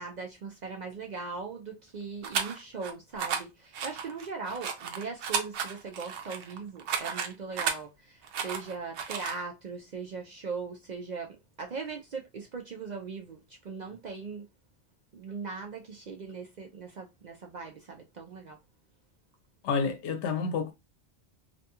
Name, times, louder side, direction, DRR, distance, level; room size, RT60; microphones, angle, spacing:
voice 1, 0.0-14.4 15.1-18.6, right 4 dB, 55° right, 0.5 m, -39 dB
sound 1, 2.2-2.9 3.2-3.4 3.7-7.8 8.2-9.4, right 6 dB, 75° right, 0.9 m, -33 dB
voice 2, 19.6-20.7, left 5 dB, 80° left, 0.9 m, -29 dB
2.5 x 2.3 x 2.7 m
omnidirectional pair, 1.2 m